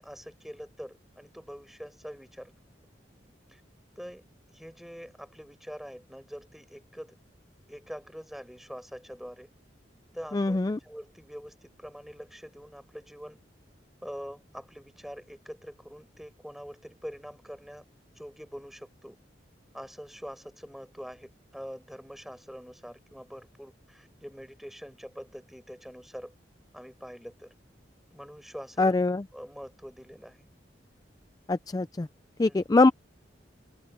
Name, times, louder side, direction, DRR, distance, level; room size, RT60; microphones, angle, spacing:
voice 1, 0.0-2.5 3.5-3.6 4.0-4.2 4.5-7.2 7.7-9.5 10.1-13.4 14.0-17.8 18.2-19.2 19.7-26.3 26.7-27.5 28.1-28.9 29.3-30.5 32.4-32.6, equal, ahead, 4.8 m, -44 dB
voice 2, 10.3-10.8 28.8-29.2 31.5-32.1 32.4-32.9, left 3 dB, 20° left, 0.4 m, -23 dB
head